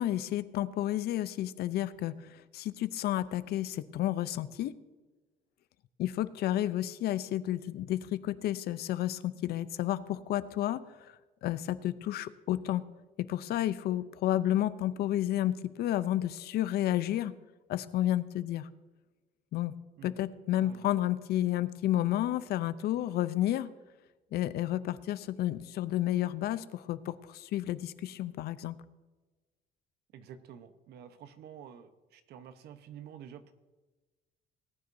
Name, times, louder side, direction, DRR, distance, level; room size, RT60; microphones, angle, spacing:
voice 1, 0.0-4.7 6.0-11.1 11.4-12.8 13.2-17.3 17.7-18.7 19.5-19.7 20.0-23.7 24.3-28.8, left 13 dB, 70° left, 15 dB, 0.6 m, -31 dB
voice 2, 30.1-33.5, right 8 dB, 75° right, 10 dB, 1.0 m, -49 dB
19.0 x 9.5 x 2.7 m, 1.2 s
cardioid pair, 110°, 17 cm